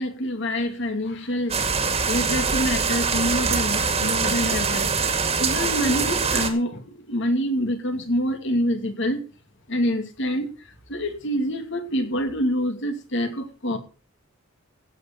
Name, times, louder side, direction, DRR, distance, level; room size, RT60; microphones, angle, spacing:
voice 1, 0.0-1.6 2.1-5.1 5.4-9.2 9.7-10.5 10.9-13.8, equal, 60° left, 7 dB, 2.6 m, -26 dB
sound 1, 1.5-6.5, right 5 dB, 30° right, 2.2 m, -23 dB
16.5 x 7.7 x 6.0 m, 0.34 s
head